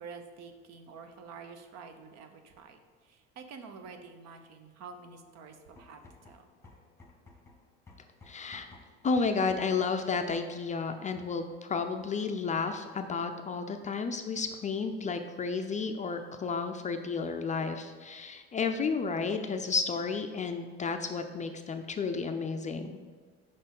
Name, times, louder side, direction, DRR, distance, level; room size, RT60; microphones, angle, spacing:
voice 1, 0.0-6.5, right 5 dB, 60° right, 6 dB, 0.8 m, -48 dB
sound 1, 5.6-9.9, left 3 dB, 10° left, 1.2 m, -55 dB
voice 2, 8.3-8.7 9.0-23.0, left 4 dB, 25° left, 6 dB, 0.4 m, -32 dB
5.1 x 4.3 x 5.3 m, 1.5 s
supercardioid pair, 95°, 31 cm